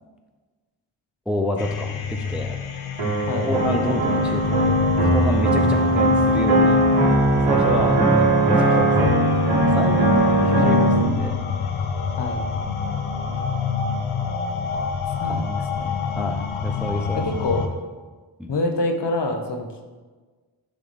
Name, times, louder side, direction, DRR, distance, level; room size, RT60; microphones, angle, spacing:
voice 1, 1.3-2.6 3.5-6.8 7.5-9.3 9.7-11.4 13.3-13.5 15.2-15.4 16.2-17.3 18.4-18.5, left 1 dB, 5° right, 4 dB, 0.3 m, -28 dB
sound 1, 1.6-17.7, left 6 dB, 85° left, 0.8 m, -28 dB
sound 2, 3.0-11.0, right 1 dB, 55° right, 2.1 m, -19 dB
voice 2, 7.7-8.4 12.2-12.4 15.2-16.0 17.1-17.6 18.5-19.9, left 2 dB, 60° left, 4 dB, 0.9 m, -27 dB
9.9 x 3.4 x 3.9 m, 1.3 s
wide cardioid pair, 140°, 48 cm